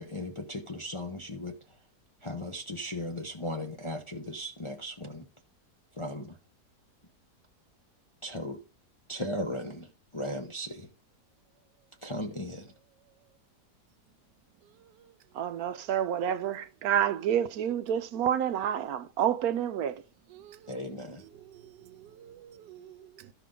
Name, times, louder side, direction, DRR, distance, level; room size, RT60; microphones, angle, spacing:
voice 1, 0.0-1.5 2.2-5.2 6.0-6.4 8.2-8.6 9.1-9.9 10.1-10.9 12.0-12.7 20.7-21.2, left 1 dB, 30° left, 0.5 m, -36 dB
voice 2, 14.8-15.1 20.3-23.3, right 11 dB, 90° right, 1.3 m, -52 dB
voice 3, 15.3-20.0, right 9 dB, 70° right, 1.0 m, -28 dB
13.5 x 5.0 x 3.8 m
omnidirectional pair, 1.8 m